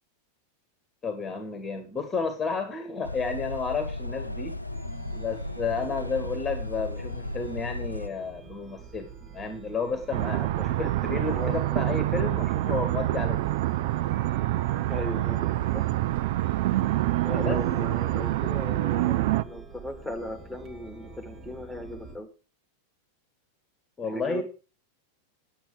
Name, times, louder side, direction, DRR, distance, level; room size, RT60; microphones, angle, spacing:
voice 1, 1.0-4.6 5.2-13.5 17.4-17.6 24.0-24.4, left 4 dB, 15° left, 8 dB, 1.7 m, -32 dB
sound 1, 3.0-8.1, left 2 dB, 85° left, 0.5 m, -35 dB
Chime, 4.7-22.2, right 4 dB, 35° right, 2.6 m, -47 dB
sound 2, 10.1-19.4, right 16 dB, 50° right, 0.5 m, -26 dB
voice 2, 11.2-11.6 14.9-15.9 17.2-22.3 24.1-24.4, left 1 dB, ahead, 7 dB, 2.4 m, -37 dB
9.2 x 8.9 x 4.9 m, 0.34 s
figure-of-eight pair, 90°, 0 cm